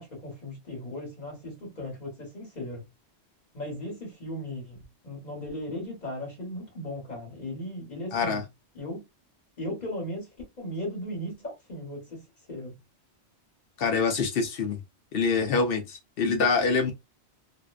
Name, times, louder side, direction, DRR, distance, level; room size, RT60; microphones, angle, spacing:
voice 1, 0.0-2.8 3.5-4.8 5.0-8.4 8.7-9.0 9.6-10.3 10.6-12.2 12.5-12.7, left 1 dB, 40° left, 1.2 m, -37 dB
voice 2, 8.1-8.4 13.8-14.8 15.1-16.9, left 4 dB, 65° left, 0.7 m, -25 dB
2.6 x 2.1 x 2.3 m
omnidirectional pair, 1.1 m